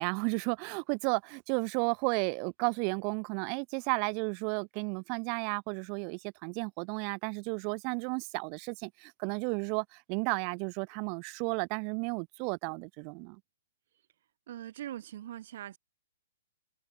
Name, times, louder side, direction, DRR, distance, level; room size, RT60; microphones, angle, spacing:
voice 1, 0.0-13.4, right 40 dB or more, 20° right, 0.6 m, -33 dB
voice 2, 14.5-15.8, right 12 dB, 40° right, 2.3 m, -41 dB
hypercardioid pair, 180°, 0 cm